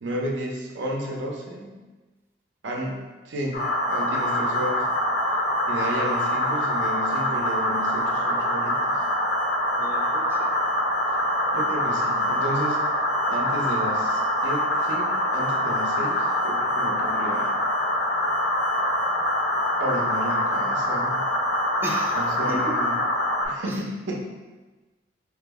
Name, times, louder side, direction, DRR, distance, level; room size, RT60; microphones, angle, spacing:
voice 1, 0.0-1.8 2.6-4.9 5.7-9.0 11.5-12.8 13.3-17.6 19.8-21.2 22.1-23.0 23.4-24.2, right 1 dB, 90° right, -1 dB, 0.7 m, -32 dB
sound 1, 3.5-23.5, equal, 55° left, 0.6 m, -24 dB
voice 2, 9.8-10.5 11.5-11.6 21.8-22.8 23.7-23.8, right 2 dB, 10° right, -2 dB, 0.3 m, -35 dB
4.7 x 2.0 x 3.4 m, 1.2 s
head